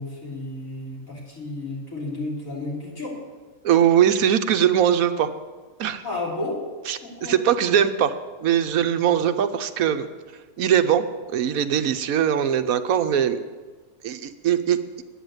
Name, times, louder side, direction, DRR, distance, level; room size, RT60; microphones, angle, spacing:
voice 1, 0.0-3.1 6.0-6.6 7.0-7.4, left 2 dB, 55° left, -4 dB, 4.0 m, -32 dB
voice 2, 3.6-5.3 5.8-6.0 6.9-10.1 10.6-11.0 11.3-13.4 14.0-14.8, right 9 dB, 65° right, 10 dB, 1.1 m, -21 dB
10.0 x 9.8 x 7.9 m, 1.4 s
omnidirectional pair, 1.7 m